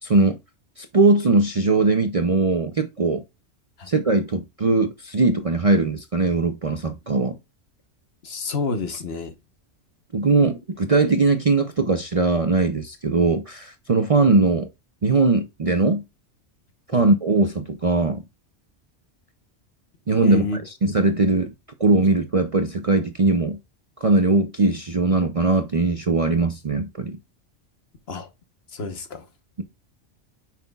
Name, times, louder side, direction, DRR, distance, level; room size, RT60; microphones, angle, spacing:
voice 1, 0.0-0.4 0.8-3.2 3.9-7.4 10.1-14.7 15.0-16.0 16.9-18.2 20.1-21.5 21.8-23.6 24.0-27.2, right 3 dB, 40° right, 0.6 m, -20 dB
voice 2, 8.2-9.3 16.9-17.0 20.2-20.6 28.1-28.3 28.7-29.2, left 3 dB, 60° left, 1.3 m, -28 dB
9.3 x 5.9 x 2.3 m
omnidirectional pair, 1.2 m